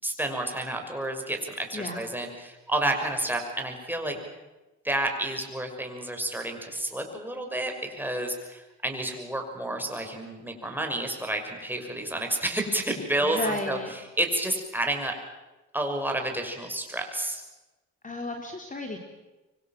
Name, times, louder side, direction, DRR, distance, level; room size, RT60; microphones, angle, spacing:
voice 1, 0.0-4.2 4.8-15.1 15.7-17.4, right 1 dB, 5° right, 3 dB, 5.9 m, -30 dB
voice 2, 1.7-2.0 4.1-4.2 13.2-13.9 18.0-19.0, left 2 dB, 25° left, 3 dB, 3.4 m, -33 dB
25.5 x 24.5 x 7.5 m, 1.1 s
cardioid pair, 90°, 30 cm